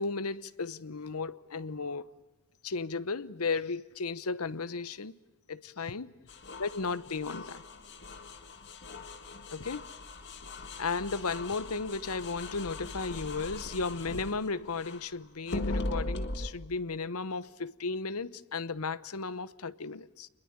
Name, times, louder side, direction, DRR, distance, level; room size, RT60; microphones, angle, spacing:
voice 1, 0.0-2.1 2.6-5.1 5.5-6.1 6.6-7.6 9.5-9.9 10.8-20.3, left 4 dB, 75° left, 0.9 m, -35 dB
sound 1, 6.3-15.1 15.5-16.5, left 2 dB, 55° left, 2.2 m, -39 dB
29.0 x 21.5 x 8.7 m
head